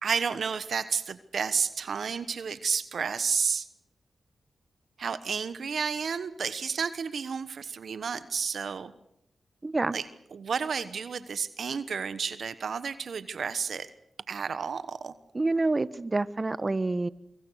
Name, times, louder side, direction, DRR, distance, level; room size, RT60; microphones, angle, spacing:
voice 1, 0.0-3.7 5.0-8.9 9.9-10.0 10.3-13.9 14.3-15.1, right 6 dB, 70° right, 13 dB, 1.2 m, -31 dB
voice 2, 9.6-10.0 15.3-17.1, right 2 dB, 35° right, 15 dB, 1.2 m, -27 dB
25.5 x 24.0 x 6.5 m, 0.81 s
supercardioid pair, 40°, 0 cm